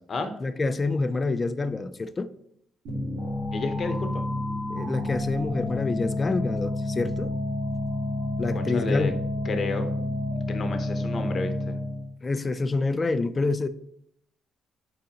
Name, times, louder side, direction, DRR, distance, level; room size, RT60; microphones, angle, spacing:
voice 1, 0.4-2.3 4.7-7.3 8.4-9.2 12.2-13.7, left 3 dB, 25° left, 12 dB, 0.4 m, -27 dB
sound 1, 2.8-12.1, left 1 dB, 85° right, 2.3 m, -29 dB
voice 2, 3.5-4.2 8.5-9.1 9.5-9.9 10.5-11.7, left 3 dB, 40° left, 6 dB, 0.9 m, -31 dB
8.9 x 3.8 x 2.9 m, 0.71 s
cardioid pair, 125°, 0 cm